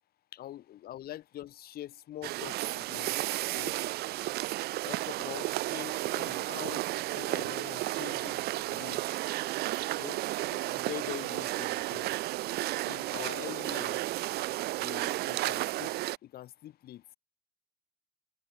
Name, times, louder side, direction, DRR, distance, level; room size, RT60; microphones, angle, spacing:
voice 1, 0.3-3.1 3.5-3.7 4.8-6.9 7.1-9.2 9.9-10.2 10.5-12.1 12.8-14.1 14.8-15.9 16.2-17.0, left 13 dB, 65° left, 2.9 m, -44 dB
sound 1, 2.2-16.2, right 17 dB, 70° right, 0.4 m, -33 dB
cardioid pair, 110°, 17 cm